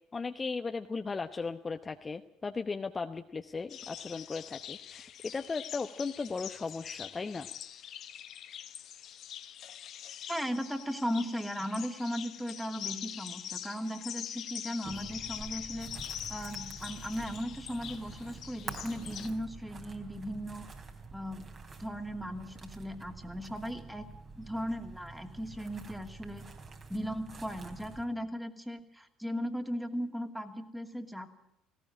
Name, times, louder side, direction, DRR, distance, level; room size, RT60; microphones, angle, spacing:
voice 1, 0.1-7.5, left 4 dB, 25° left, 7 dB, 0.9 m, -37 dB
sound 1, 3.7-19.3, left 10 dB, 50° left, 1.2 m, -44 dB
voice 2, 10.3-15.9 16.3-20.7 21.1-21.5 21.8-24.1 24.4-26.5 26.9-31.3, equal, 5° right, 6 dB, 2.6 m, -37 dB
sound 2, 14.8-28.0, right 4 dB, 40° right, 3.5 m, -47 dB
19.0 x 17.0 x 8.7 m, 0.80 s
hypercardioid pair, 60°, 0 cm